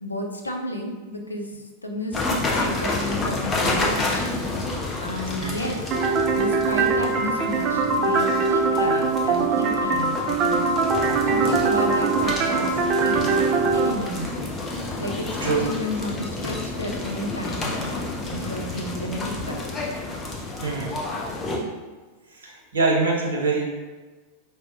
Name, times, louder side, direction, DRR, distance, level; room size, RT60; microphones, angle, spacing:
voice 1, 0.0-4.3 5.0-5.8 6.3-10.8 11.3-14.5 15.0-19.8, left 1 dB, 80° left, 2 dB, 0.4 m, -32 dB
sound 1, 2.1-21.6, left 2 dB, 20° left, 0.6 m, -30 dB
sound 2, 5.9-13.9, right 4 dB, 35° right, 0.3 m, -22 dB
voice 2, 20.6-21.0 22.3-23.6, right 3 dB, 70° right, -3 dB, 0.7 m, -24 dB
4.8 x 2.0 x 2.6 m, 1.3 s
figure-of-eight pair, 90°, 0 cm